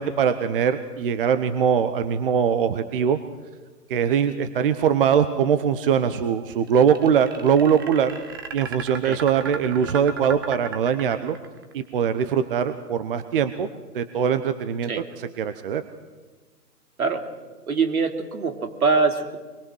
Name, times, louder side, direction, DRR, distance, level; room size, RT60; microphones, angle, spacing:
voice 1, 0.0-3.2 3.9-8.1 8.5-11.4 11.7-13.7 13.9-14.9 15.4-15.8, right 7 dB, 35° right, 11 dB, 1.0 m, -22 dB
sound 1, 6.7-11.7, right 6 dB, 15° right, 0.6 m, -35 dB
voice 2, 17.7-19.4, right 4 dB, 65° right, 6 dB, 3.3 m, -23 dB
24.5 x 22.0 x 6.4 m, 1.3 s
figure-of-eight pair, 140°, 46 cm